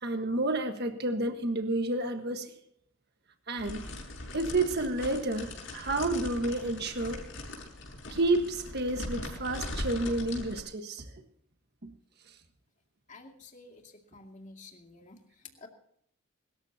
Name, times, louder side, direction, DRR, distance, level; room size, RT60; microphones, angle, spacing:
voice 1, 0.0-2.5 3.5-3.9 4.3-7.2 8.1-11.0 11.8-11.9, right 2 dB, 50° right, 6 dB, 1.5 m, -30 dB
sound 1, 3.6-10.6, left 1 dB, 60° left, 6.5 m, -40 dB
voice 2, 13.1-15.7, left 3 dB, 35° left, 2 dB, 2.4 m, -51 dB
24.0 x 13.5 x 2.9 m, 0.69 s
head